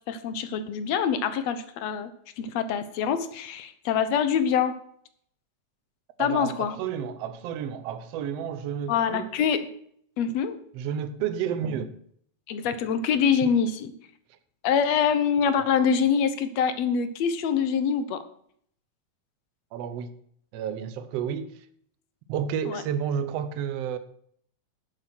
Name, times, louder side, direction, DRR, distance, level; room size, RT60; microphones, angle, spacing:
voice 1, 0.1-2.1 2.4-4.7 6.2-6.8 8.9-9.6 10.2-10.6 12.5-13.9 14.6-18.2 22.7-22.8, left 7 dB, 70° left, 2.0 m, -25 dB
voice 2, 6.2-9.3 10.7-12.0 13.4-13.5 19.7-20.1 20.5-21.7 22.3-24.0, right 8 dB, 65° right, 1.9 m, -31 dB
11.0 x 7.6 x 6.1 m
omnidirectional pair, 3.3 m